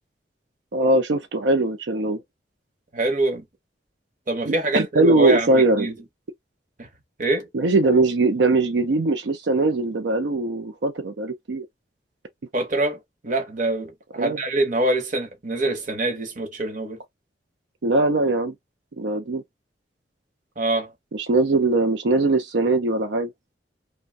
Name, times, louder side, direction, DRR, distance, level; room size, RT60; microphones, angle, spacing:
voice 1, 0.7-2.2 4.5-5.9 7.5-11.7 14.2-14.4 17.8-18.5 19.0-19.4 21.1-23.3, right 2 dB, 80° right, 0.5 m, -21 dB
voice 2, 2.9-3.4 4.3-5.9 6.8-6.9 7.2-7.5 12.5-17.0 20.6-20.9, right 2 dB, 45° right, 0.9 m, -25 dB
2.5 x 2.2 x 3.3 m
head